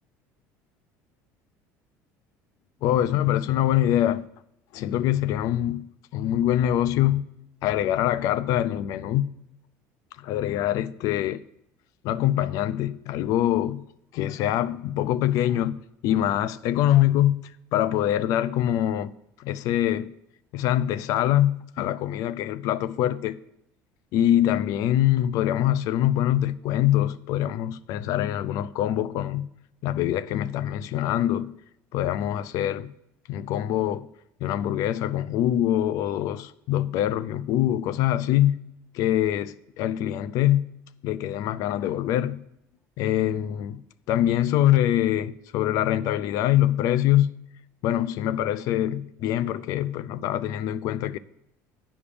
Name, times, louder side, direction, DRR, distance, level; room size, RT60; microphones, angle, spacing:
voice 1, 2.8-4.3 4.7-5.9 6.1-7.3 7.6-9.3 10.2-11.4 12.0-13.8 14.1-17.4 17.7-19.1 19.4-20.1 20.5-23.4 24.1-29.5 29.8-31.6 31.9-32.9 33.3-34.1 34.4-38.6 38.9-40.7 41.0-42.4 43.0-43.8 44.1-47.3 47.8-51.2, left 12 dB, 60° left, 0.5 m, -24 dB
10.0 x 5.2 x 6.9 m
cardioid pair, 140°, 7 cm